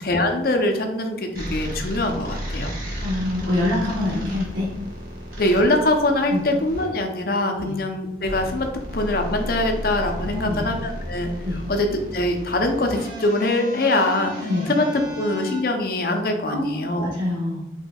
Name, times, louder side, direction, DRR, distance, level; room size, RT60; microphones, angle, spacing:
voice 1, 0.0-2.7 5.4-8.7 8.9-11.3 11.7-17.1, left 1 dB, 50° left, 4 dB, 0.6 m, -23 dB
sound 1, 1.3-6.9 8.2-15.6, equal, 50° right, 1.1 m, -33 dB
voice 2, 3.0-4.7 6.3-6.4 7.5-7.7 10.3-10.6 11.4-11.6 14.5-14.7 16.4-17.6, left 1 dB, 85° right, -7 dB, 1.1 m, -25 dB
4.4 x 4.1 x 2.3 m, 0.92 s
head